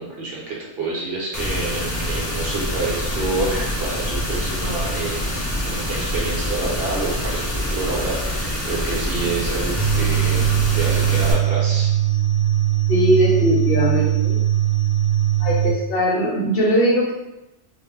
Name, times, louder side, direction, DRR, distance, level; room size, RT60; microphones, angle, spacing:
voice 1, 0.0-5.3 5.6-10.4 10.7-11.9, right 3 dB, 60° right, -4 dB, 0.9 m, -28 dB
sound 1, 1.3-11.3, equal, 20° left, 0.5 m, -25 dB
sound 2, 9.8-15.7, right 11 dB, 35° right, 0.3 m, -20 dB
voice 2, 12.9-14.4 15.4-17.1, equal, 60° left, -4 dB, 0.7 m, -19 dB
2.4 x 2.1 x 3.2 m, 0.96 s
omnidirectional pair, 1.2 m